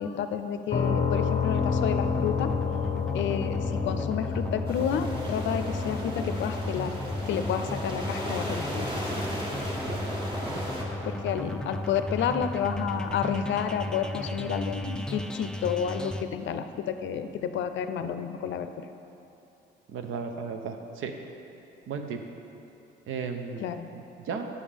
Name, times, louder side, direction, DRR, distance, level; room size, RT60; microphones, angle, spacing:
voice 1, 0.0-2.5 3.1-6.9 7.3-8.9 11.0-18.9 23.6-23.9, left 8 dB, 70° left, 9 dB, 0.5 m, -30 dB
sound 1, 0.7-14.4, left 6 dB, 35° left, 0.7 m, -32 dB
sound 2, 1.5-16.2, left 1 dB, 5° left, 0.4 m, -35 dB
sound 3, 4.7-10.8, equal, 25° right, 1.5 m, -36 dB
voice 2, 19.9-21.1 21.9-22.2 23.1-23.6 23.9-24.5, right 6 dB, 80° right, 5 dB, 0.7 m, -35 dB
8.6 x 5.4 x 5.0 m, 2.9 s
cardioid pair, 90°, 20 cm